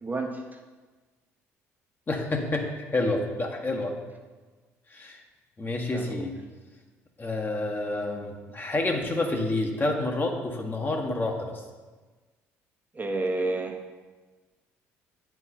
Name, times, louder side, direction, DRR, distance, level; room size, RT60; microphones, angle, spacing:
voice 1, 0.0-0.4 5.9-6.3 12.9-13.8, right 2 dB, 25° right, 2 dB, 0.8 m, -30 dB
voice 2, 2.1-3.9 4.9-5.2 5.6-6.4 7.2-11.6, left 2 dB, 30° left, 2 dB, 1.3 m, -29 dB
8.7 x 4.6 x 4.3 m, 1.3 s
hypercardioid pair, 60°, 7 cm